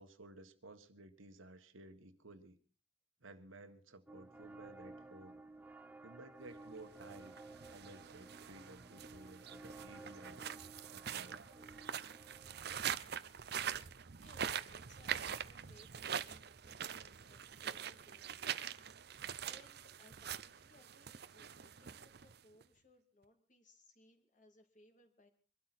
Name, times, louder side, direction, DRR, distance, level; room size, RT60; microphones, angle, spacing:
voice 1, 0.0-2.6 3.2-5.4 6.0-7.3 7.7-10.5 10.9-11.4, right 2 dB, 90° right, 8 dB, 1.7 m, -56 dB
sound 1, 4.1-12.7, right 2 dB, 10° right, 0.7 m, -55 dB
sound 2, 6.9-22.6, right 8 dB, 55° right, 0.7 m, -44 dB
voice 2, 13.7-25.3, left 1 dB, 40° left, 6 dB, 2.6 m, -66 dB
24.0 x 12.5 x 4.3 m, 0.39 s
head